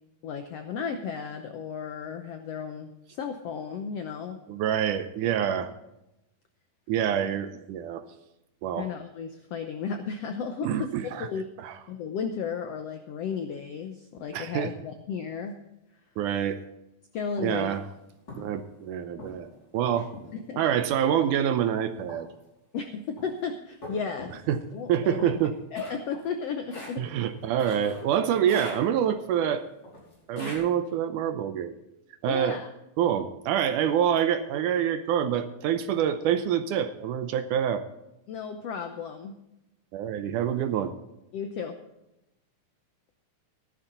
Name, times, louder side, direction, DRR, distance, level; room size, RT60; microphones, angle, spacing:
voice 1, 0.2-4.4 8.8-11.5 11.9-15.6 17.1-17.7 19.9-20.0 20.3-20.6 22.7-24.3 24.7-25.3 25.7-27.1 32.3-32.7 38.3-39.4 41.3-41.8, left 6 dB, 80° left, 6 dB, 1.4 m, -34 dB
voice 2, 4.5-5.7 6.9-8.0 8.6-8.9 10.6-11.3 11.6-11.7 14.3-14.7 16.2-16.6 17.4-17.8 18.4-19.5 19.7-20.1 20.6-22.3 24.5-24.6 24.9-25.5 27.0-29.6 30.3-31.7 32.2-32.6 33.0-37.8 39.9-40.9, right 9 dB, 75° right, 9 dB, 2.1 m, -26 dB
sound 1, 17.4-17.6 18.3-18.6 19.2-19.6 20.1-20.5 21.1-21.5 22.1-22.4 23.2-23.3 23.8-24.5 25.2-28.2 28.5-29.3 29.8-30.6, left 2 dB, 30° left, 5.7 m, -41 dB
14.5 x 11.5 x 4.0 m, 0.90 s
omnidirectional pair, 4.0 m